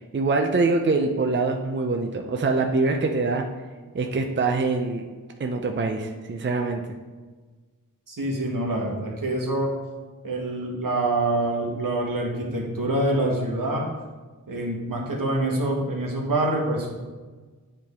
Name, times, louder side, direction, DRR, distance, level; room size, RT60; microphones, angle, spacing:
voice 1, 0.1-3.4 3.9-5.1 5.4-6.8, right 3 dB, 35° right, 3 dB, 0.5 m, -24 dB
voice 2, 8.1-9.7 10.2-13.9 14.5-16.9, right 1 dB, 75° right, -1 dB, 1.3 m, -26 dB
8.8 x 3.4 x 3.5 m, 1.4 s
wide cardioid pair, 75°, 34 cm